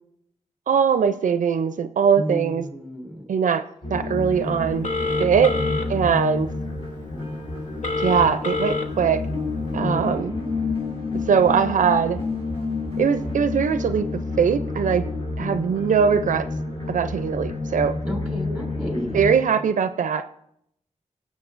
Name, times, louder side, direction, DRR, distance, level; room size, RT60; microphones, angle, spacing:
voice 1, 0.7-2.7 3.3-3.6 3.9-4.9 5.2-5.6 5.9-6.5 8.0-9.2 9.7-10.3 11.3-12.2 13.0-14.1 14.4-15.0 15.4-16.5 16.9-18.0 19.1-20.3, right 7 dB, 90° right, 11 dB, 0.4 m, -21 dB
voice 2, 2.2-3.3 5.5-6.1 9.8-10.3 18.0-19.2, equal, ahead, 0 dB, 4.0 m, -32 dB
sound 1, 3.8-19.3, left 3 dB, 45° left, 5.0 m, -29 dB
Telephone, 4.8-5.9 7.8-8.8, left 3 dB, 75° left, 1.1 m, -26 dB
20.5 x 7.2 x 2.5 m, 0.73 s
wide cardioid pair, 75°, 13 cm